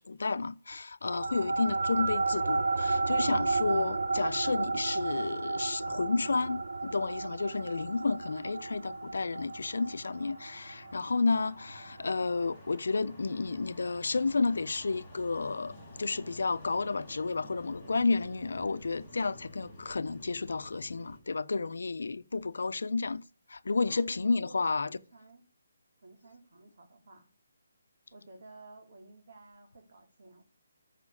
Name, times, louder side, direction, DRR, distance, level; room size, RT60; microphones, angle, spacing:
voice 1, 0.0-23.2 23.5-24.9, left 3 dB, 70° left, 1.0 m, -31 dB
sound 1, 1.1-11.9, right 3 dB, 90° right, 1.0 m, -32 dB
sound 2, 1.7-21.2, left 1 dB, ahead, 4.1 m, -53 dB
voice 2, 23.8-25.5 26.0-27.3 28.1-30.4, right 2 dB, 40° right, 3.2 m, -53 dB
14.5 x 6.0 x 6.5 m
hypercardioid pair, 180°, 0 cm